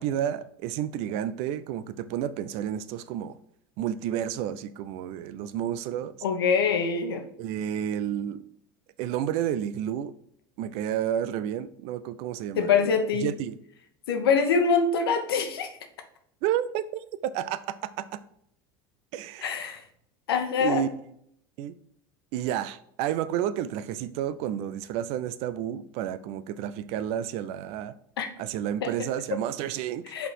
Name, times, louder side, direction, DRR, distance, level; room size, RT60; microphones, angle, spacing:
voice 1, 0.0-3.4 3.8-6.1 7.4-8.4 9.0-10.1 10.6-12.9 13.2-13.6 16.4-18.2 19.1-19.6 20.6-20.9 21.6-21.8 22.3-27.9 28.4-30.1, right 10 dB, 55° right, 0.5 m, -31 dB
voice 2, 6.2-7.2 12.6-13.3 14.1-15.7 19.4-19.8 20.3-20.9 28.2-28.3 28.8-28.9 30.1-30.3, left 5 dB, 80° left, 1.0 m, -24 dB
5.3 x 4.4 x 4.6 m
hypercardioid pair, 75°, 12 cm